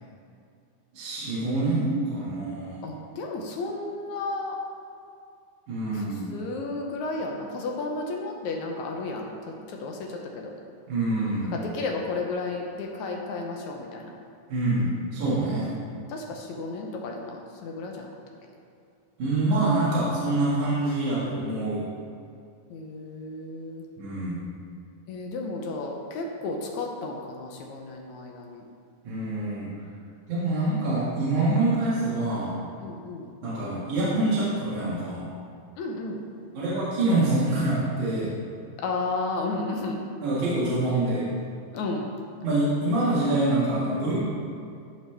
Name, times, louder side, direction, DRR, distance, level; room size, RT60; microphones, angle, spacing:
voice 1, 0.9-2.8 5.7-6.3 10.9-11.6 14.5-15.7 19.2-21.8 24.0-24.4 29.0-29.7 30.3-32.5 33.4-35.3 36.5-38.3 40.2-41.3 42.4-44.2, right 2 dB, 65° right, -10 dB, 3.1 m, -25 dB
voice 2, 2.8-4.6 5.9-10.5 11.5-14.1 16.1-18.1 22.7-23.8 25.1-28.6 32.8-33.3 35.8-36.2 38.8-40.0 41.7-42.1, left 3 dB, 75° left, 1 dB, 1.9 m, -33 dB
14.5 x 5.3 x 3.4 m, 2.4 s
omnidirectional pair, 3.9 m